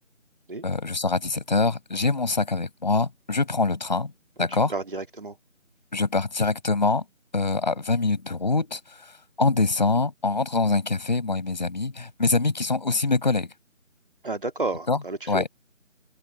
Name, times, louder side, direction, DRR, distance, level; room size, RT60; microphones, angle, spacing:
voice 1, 0.6-4.1 4.4-4.7 5.9-7.0 7.3-8.8 9.4-13.5 14.9-15.0 15.3-15.5, left 3 dB, 35° left, 5.9 m, -24 dB
voice 2, 4.7-5.4 14.2-15.5, right 3 dB, 40° right, 2.3 m, -31 dB
open air
figure-of-eight pair, 170°, 40 cm